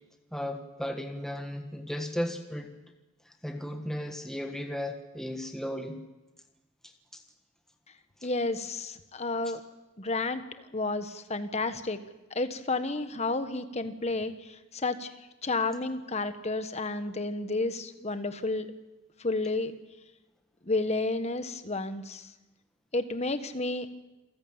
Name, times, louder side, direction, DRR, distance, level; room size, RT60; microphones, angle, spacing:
voice 1, 0.3-2.7 3.3-6.0 7.1-7.2 8.2-8.3, equal, ahead, 4 dB, 1.5 m, -35 dB
voice 2, 8.2-9.6 10.0-10.4 10.7-12.0 12.3-15.1 15.4-18.7 19.2-19.8 20.7-22.3 22.9-23.9, left 2 dB, 30° left, 9 dB, 1.3 m, -31 dB
28.0 x 14.5 x 8.8 m, 1.1 s
head